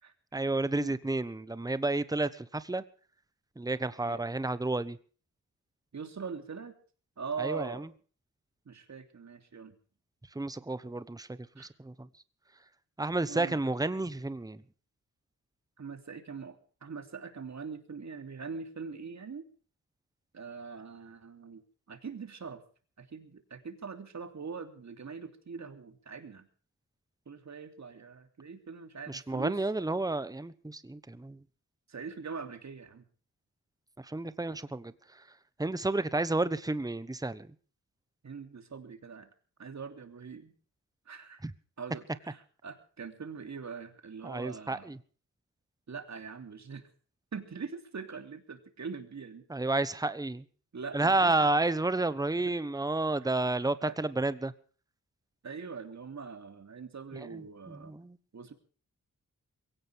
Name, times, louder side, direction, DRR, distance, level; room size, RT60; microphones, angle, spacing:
voice 1, 0.3-2.8 3.6-5.0 7.4-7.9 10.3-12.1 13.0-14.6 29.1-31.4 34.0-35.3 35.6-37.5 41.4-41.5 44.2-45.0 49.5-50.4 50.9-54.5 57.1-58.2, right 2 dB, 10° right, 14 dB, 1.0 m, -31 dB
voice 2, 5.9-6.8 7.2-7.9 8.6-9.8 11.6-11.7 13.3-13.6 15.8-19.5 20.3-22.6 23.0-26.5 27.3-29.6 31.9-33.0 38.2-39.3 39.6-40.5 41.0-41.4 41.8-44.9 45.9-46.9 47.3-49.4 50.7-51.5 52.4-52.5 53.8-54.0 55.4-58.0 58.3-58.5, right 5 dB, 55° right, 7 dB, 3.1 m, -42 dB
22.5 x 17.0 x 3.5 m, 0.41 s
wide cardioid pair, 115°, 32 cm